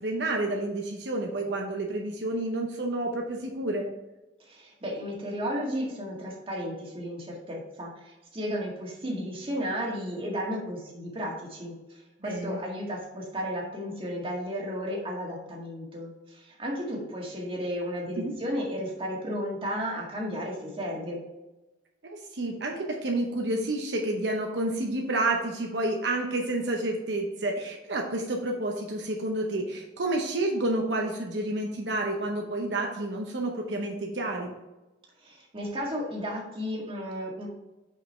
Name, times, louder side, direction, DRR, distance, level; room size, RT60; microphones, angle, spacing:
voice 1, 0.0-3.9 12.2-12.6 18.2-18.3 22.1-34.5, right 2 dB, 70° right, 1 dB, 0.8 m, -29 dB
voice 2, 4.4-21.2 35.2-37.5, equal, 30° right, -2 dB, 1.6 m, -34 dB
5.7 x 5.2 x 4.3 m, 1.0 s
head